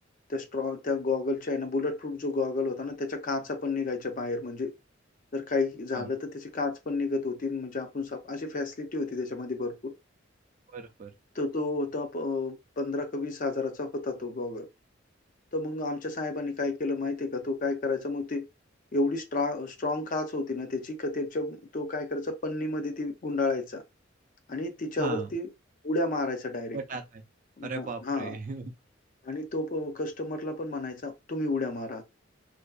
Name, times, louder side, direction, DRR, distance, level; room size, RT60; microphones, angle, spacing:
voice 1, 0.3-4.7 5.3-9.9 11.4-14.7 15.5-18.5 18.9-23.8 24.5-25.5 25.8-26.8 27.6-28.4 29.2-32.0, left 3 dB, 40° left, 0.5 m, -31 dB
voice 2, 10.7-11.1 25.0-25.3 26.7-27.2 27.6-28.7, right 4 dB, 40° right, 0.4 m, -37 dB
2.5 x 2.2 x 2.3 m
head